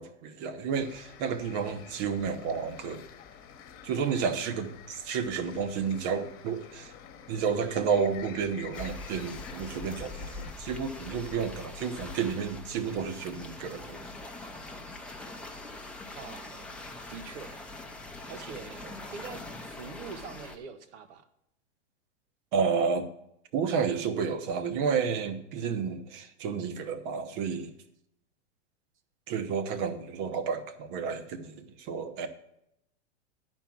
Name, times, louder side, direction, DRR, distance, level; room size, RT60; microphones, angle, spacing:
voice 1, 0.0-3.0 3.8-6.9 7.3-14.1 22.5-23.1 23.5-27.7 29.3-32.3, right 6 dB, 50° right, 9 dB, 1.1 m, -31 dB
sound 1, 0.7-10.5, left 8 dB, 40° left, 1.2 m, -49 dB
sound 2, 8.7-20.6, left 2 dB, 5° left, 0.7 m, -43 dB
voice 2, 16.1-16.7 17.1-17.7 18.3-21.3, right 5 dB, 75° right, 9 dB, 1.2 m, -44 dB
10.5 x 4.5 x 7.3 m, 0.79 s
hypercardioid pair, 120°, 35 cm